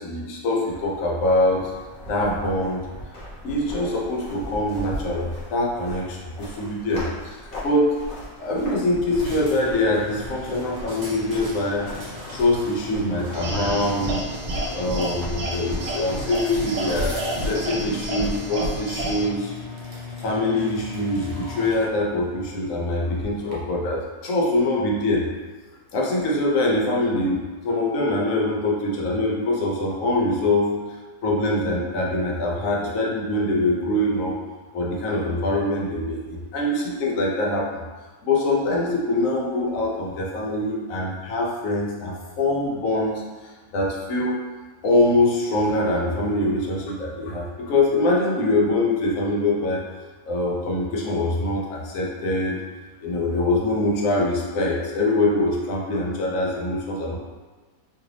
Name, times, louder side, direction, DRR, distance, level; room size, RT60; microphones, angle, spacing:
voice 1, 0.0-1.7 2.1-2.8 3.4-7.9 8.4-11.9 12.3-14.2 14.7-19.5 20.2-25.3 25.9-30.7 31.2-34.3 34.7-37.8 38.2-44.4 44.8-49.8 50.3-52.6 53.0-57.2, left 2 dB, 65° left, -2 dB, 1.0 m, -24 dB
sound 1, 0.7-18.3, equal, 45° left, 1.0 m, -40 dB
sound 2, 9.1-23.5, left 2 dB, 50° right, 0.5 m, -39 dB
sound 3, 13.3-19.3, right 1 dB, 80° right, 1.1 m, -29 dB
2.8 x 2.5 x 3.2 m, 1.3 s
omnidirectional pair, 1.6 m